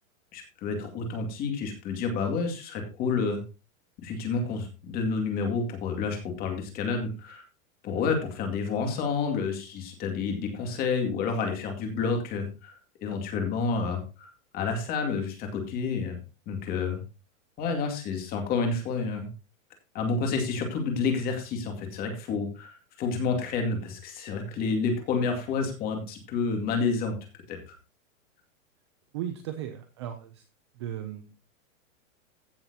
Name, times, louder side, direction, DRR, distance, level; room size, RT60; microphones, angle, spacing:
voice 1, 0.3-3.4 4.0-7.4 7.8-12.8 13.0-16.2 16.5-17.0 17.6-19.3 19.9-27.2 27.5-27.7, left 4 dB, 20° left, 4 dB, 2.3 m, -29 dB
voice 2, 29.1-30.4 30.7-31.3, right 10 dB, 20° right, 8 dB, 0.5 m, -36 dB
15.5 x 7.1 x 2.9 m, 0.31 s
supercardioid pair, 170°, 40 cm